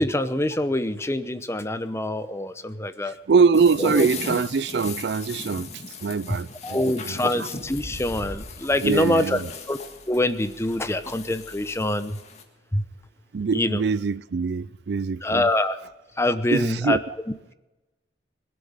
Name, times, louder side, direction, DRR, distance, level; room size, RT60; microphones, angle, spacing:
voice 1, 0.0-3.1 3.8-4.1 6.6-9.4 9.7-9.8 10.1-12.2 12.7-12.8 13.5-13.8 15.2-15.8 16.2-17.0, left 1 dB, 15° left, 0.8 m, -25 dB
voice 2, 3.3-5.7 6.0-7.5 8.8-9.5 13.3-15.5 16.5-17.1, right 5 dB, 70° right, 0.4 m, -23 dB
sound 1, 3.5-12.4, left 4 dB, 40° left, 1.8 m, -39 dB
sound 2, 6.0-6.4 7.5-11.9, equal, 5° right, 5.5 m, -43 dB
21.0 x 7.8 x 8.9 m
head